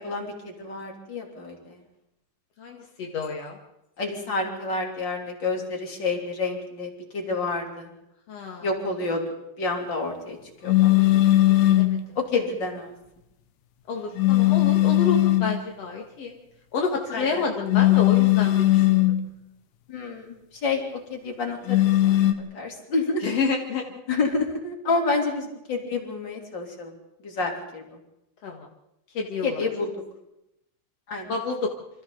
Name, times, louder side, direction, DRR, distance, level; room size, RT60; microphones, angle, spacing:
voice 1, 0.0-1.8 4.0-7.9 8.6-9.2 9.6-10.4 10.6-10.9 12.1-12.9 17.1-17.4 19.9-20.3 20.6-23.2 24.1-26.9 27.2-27.8 29.4-29.9 31.1-31.3, left 3 dB, 25° left, 1 dB, 3.2 m, -29 dB
voice 2, 2.6-3.6 8.3-8.7 11.7-12.0 13.9-16.3 16.7-19.1 23.2-23.8 28.4-28.6 29.1-29.6 31.3-31.7, left 4 dB, 60° left, 1 dB, 1.6 m, -29 dB
sound 1, 10.7-12.0 14.2-15.6 17.7-19.2 21.7-22.3, left 16 dB, 85° left, 3.8 m, -18 dB
28.0 x 26.0 x 4.0 m, 0.86 s
omnidirectional pair, 5.7 m